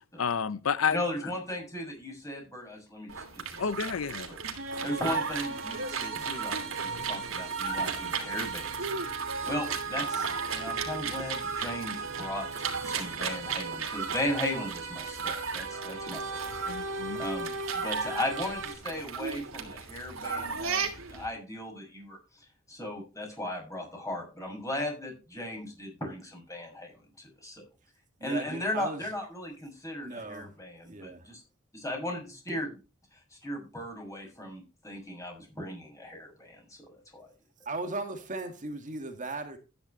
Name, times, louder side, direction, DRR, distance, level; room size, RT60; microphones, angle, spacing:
voice 1, 0.2-1.0 3.6-4.3 16.7-17.2, left 6 dB, 90° left, 0.6 m, -30 dB
voice 2, 0.9-3.6 4.3-4.4 4.8-8.7 9.5-16.5 17.2-22.2 22.7-26.9 27.4-27.6 28.2-31.4 31.7-32.7 33.4-36.6 37.1-37.3, left 1 dB, 15° left, 6.4 m, -37 dB
sound 1, 3.1-21.3, right 5 dB, 90° right, 2.9 m, -36 dB
sound 2, 4.6-18.7, right 4 dB, 70° right, 2.7 m, -37 dB
voice 3, 28.2-29.1 30.0-30.5 30.8-31.3 37.7-39.6, right 2 dB, 40° right, 2.0 m, -37 dB
13.0 x 10.0 x 3.1 m
head